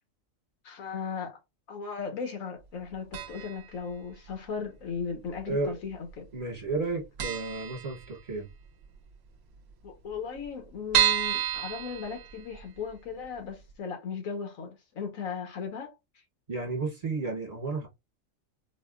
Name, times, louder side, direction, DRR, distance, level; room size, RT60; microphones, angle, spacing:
voice 1, 0.6-1.4 1.7-6.2 9.8-15.9, left 6 dB, 85° left, 1.5 m, -37 dB
sound 1, 3.1-3.7 3.9-4.0 5.0-5.7 5.9-6.1 6.4-6.5 6.8-6.9 7.2-8.5 8.9-9.0 9.2-9.3 9.5-9.6 10.1-12.8 13.2-13.3 13.7-13.8, right 10 dB, 60° right, 0.8 m, -30 dB
voice 2, 5.5-5.8 6.3-8.5 16.5-17.9, right 3 dB, 30° right, 1.1 m, -32 dB
4.1 x 2.2 x 2.3 m
omnidirectional pair, 1.4 m